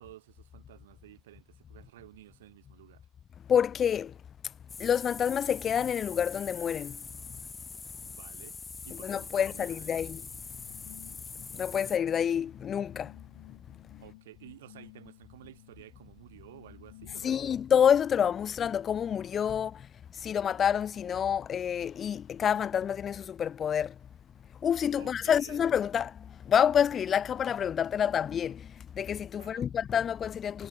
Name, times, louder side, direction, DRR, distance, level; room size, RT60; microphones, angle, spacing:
voice 1, 0.0-3.1 8.0-10.0 14.0-17.5 25.0-25.6 29.4-29.7, right 14 dB, 80° right, 2.3 m, -53 dB
voice 2, 3.5-4.1 4.8-7.0 9.0-10.2 11.5-13.1 17.2-19.9 20.2-23.9 24.6-30.7, left 8 dB, 40° left, 1.0 m, -28 dB
sound 1, 4.7-12.0, left 4 dB, 25° left, 3.1 m, -43 dB
sound 2, 9.4-17.9, left 20 dB, 75° left, 6.4 m, -55 dB
hypercardioid pair, 70°, 0 cm